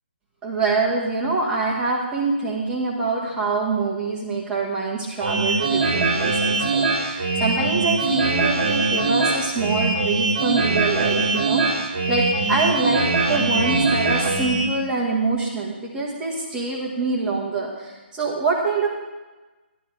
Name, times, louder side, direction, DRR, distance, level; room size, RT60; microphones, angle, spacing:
voice 1, 0.4-18.9, right 3 dB, 10° right, -5 dB, 1.8 m, -25 dB
sound 1, 5.2-14.7, right 3 dB, 35° right, 2.0 m, -22 dB
12.0 x 11.5 x 3.5 m, 1.2 s
hypercardioid pair, 155°, 7 cm